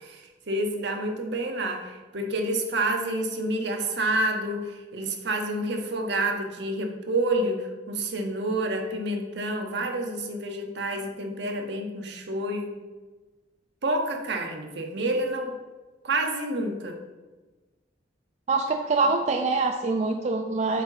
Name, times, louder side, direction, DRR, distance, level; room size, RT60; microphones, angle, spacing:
voice 1, 0.0-12.8 13.8-15.6 16.0-17.0, right 1 dB, 70° right, 3 dB, 0.9 m, -28 dB
voice 2, 18.5-20.8, right 3 dB, 40° right, 4 dB, 0.4 m, -24 dB
7.6 x 2.7 x 5.5 m, 1.2 s
head